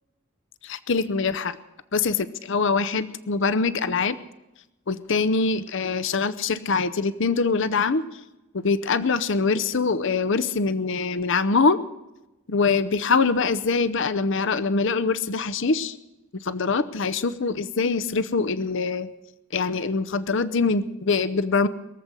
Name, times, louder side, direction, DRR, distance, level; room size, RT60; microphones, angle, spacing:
voice 1, 0.6-1.6 1.9-4.2 4.9-8.0 8.5-11.8 12.5-15.9 16.4-19.1 19.5-21.7, left 4 dB, 55° left, 15 dB, 0.7 m, -23 dB
22.5 x 7.8 x 8.2 m, 0.98 s
head